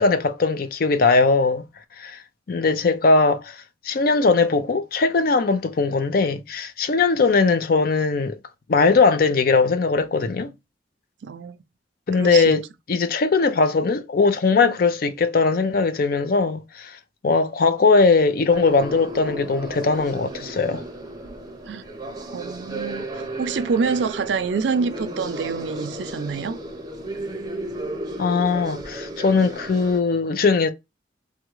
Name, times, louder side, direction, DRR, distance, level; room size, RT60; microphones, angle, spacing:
voice 1, 0.0-1.6 2.0-2.2 2.5-3.6 3.8-8.4 8.7-10.5 12.1-12.6 12.9-20.8 28.2-30.7, left 4 dB, 55° left, 0.4 m, -20 dB
voice 2, 11.2-11.6 12.2-12.6 21.7-21.8 22.3-26.6, right 5 dB, 75° right, 0.4 m, -26 dB
sound 1, 18.5-30.0, right 1 dB, 20° right, 0.6 m, -34 dB
3.5 x 2.1 x 3.0 m
head